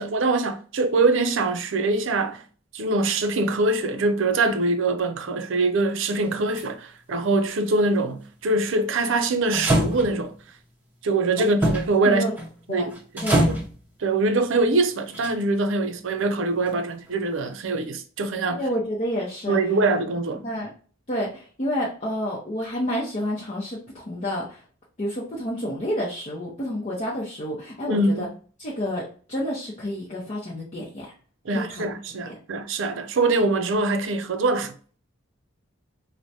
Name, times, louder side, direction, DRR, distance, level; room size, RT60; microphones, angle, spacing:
voice 1, 0.0-2.4 2.7-10.3 11.0-12.3 12.7-13.0 13.5-13.6 14.0-18.6 19.5-20.4 27.9-28.3 31.5-34.7, right 2 dB, 65° right, 0.5 m, -23 dB
sound 1, 6.3-6.6 9.5-10.4 11.6-12.0 12.3-12.6 12.9-13.8 15.1-15.6 16.6-16.7, right 1 dB, 10° right, 0.7 m, -24 dB
voice 2, 13.2-13.5 18.5-19.6 20.4-20.7 21.1-24.6 25.0-28.3 28.6-31.1 31.5-31.8 32.2-32.3, equal, 35° left, 0.7 m, -29 dB
4.6 x 2.1 x 2.7 m
head